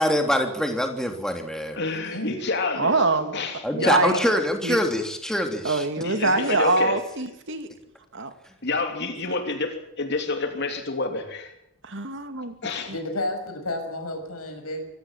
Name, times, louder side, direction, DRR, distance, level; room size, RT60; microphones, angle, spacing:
voice 1, 0.0-1.8 3.6-5.9, equal, 5° left, 4 dB, 3.2 m, -24 dB
voice 2, 1.8-3.0 3.3-4.2 6.0-7.0 8.6-11.5 12.6-12.9, left 3 dB, 50° left, 5 dB, 3.0 m, -28 dB
voice 3, 2.8-3.3 3.8-4.2 4.6-4.8 5.6-7.7 8.1-8.3 11.8-12.5, right 3 dB, 55° right, 8 dB, 2.6 m, -24 dB
voice 4, 12.9-14.9, left 1 dB, 80° left, 5 dB, 6.4 m, -31 dB
25.0 x 16.5 x 7.5 m, 0.78 s
head